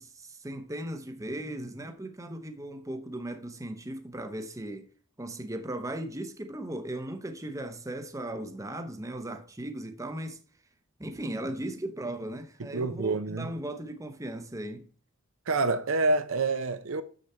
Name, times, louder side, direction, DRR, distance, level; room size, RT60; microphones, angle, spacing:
voice 1, 0.0-4.9 5.2-10.4 11.0-14.9, right 1 dB, 15° right, 0.8 m, -37 dB
voice 2, 12.6-13.5 15.5-17.0, right 3 dB, 65° right, 0.7 m, -27 dB
7.2 x 6.6 x 4.3 m
head